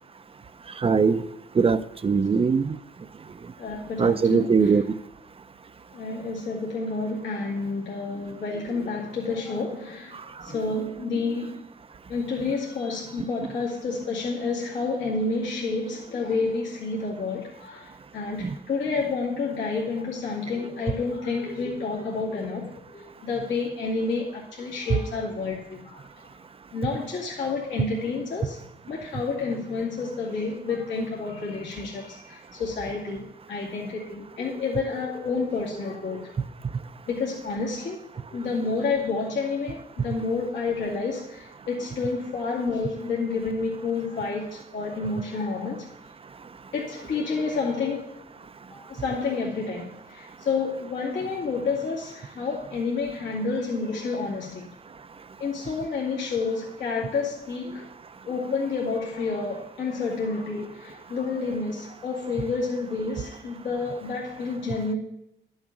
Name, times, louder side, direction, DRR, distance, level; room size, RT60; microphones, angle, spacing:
voice 1, 0.8-1.3 1.5-2.8 4.0-5.0, right 5 dB, 30° right, 13 dB, 0.5 m, -21 dB
voice 2, 3.6-4.8 5.9-11.6 12.1-26.0 26.7-36.3 37.1-38.0 38.3-45.9 46.7-48.1 48.7-54.7 55.4-57.9 58.3-65.0, left 4 dB, 75° left, -5 dB, 2.3 m, -29 dB
11.5 x 6.4 x 5.9 m, 0.85 s
cardioid pair, 85°, 19 cm